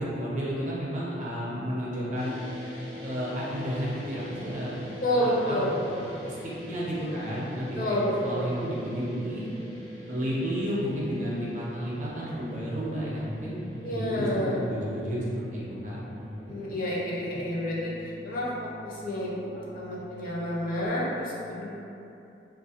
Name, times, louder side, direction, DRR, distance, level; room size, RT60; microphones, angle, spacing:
voice 1, 0.0-2.3 3.0-4.7 5.1-5.6 6.2-9.5 10.0-15.2 15.5-16.0 16.4-16.6, equal, 40° right, -7 dB, 0.6 m, -32 dB
sound 1, 2.1-20.9, equal, 80° left, 1.2 m, -44 dB
voice 2, 5.0-6.0 7.8-8.5 13.8-14.6 16.5-21.7, equal, 50° left, -6 dB, 0.5 m, -29 dB
3.1 x 2.4 x 2.8 m, 2.8 s
head